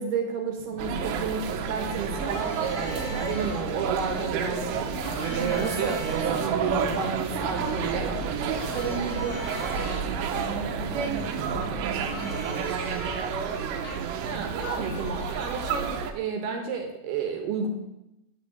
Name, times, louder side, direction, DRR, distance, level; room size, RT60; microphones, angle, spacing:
voice 1, 0.0-5.0 5.3-8.2 14.2-17.7, right 5 dB, 70° right, 3 dB, 3.0 m, -31 dB
sound 1, 0.6-13.5, left 6 dB, 85° left, 1.9 m, -43 dB
sound 2, 0.8-16.1, right 6 dB, 90° right, 3.0 m, -30 dB
Harmonica, 2.2-3.6 5.0-10.0 12.0-15.9, left 4 dB, 65° left, 2.2 m, -42 dB
voice 2, 3.0-3.4 5.3-5.9 8.2-13.2, right 5 dB, 45° right, -2 dB, 2.3 m, -36 dB
8.3 x 6.5 x 8.4 m, 0.89 s
omnidirectional pair, 5.0 m